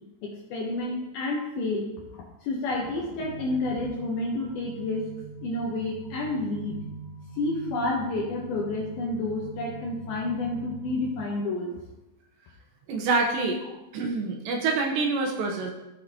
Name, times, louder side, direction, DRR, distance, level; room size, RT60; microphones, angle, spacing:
voice 1, 0.2-1.9 2.1-5.1 5.4-6.8 7.4-11.7, left 2 dB, 70° left, -2 dB, 2.4 m, -30 dB
sound 1, 3.2-11.2, right 3 dB, 50° left, 3.7 m, -43 dB
voice 2, 12.9-13.6 13.9-15.7, right 3 dB, 75° right, 1 dB, 2.9 m, -26 dB
15.0 x 6.5 x 2.9 m, 0.97 s
omnidirectional pair, 5.5 m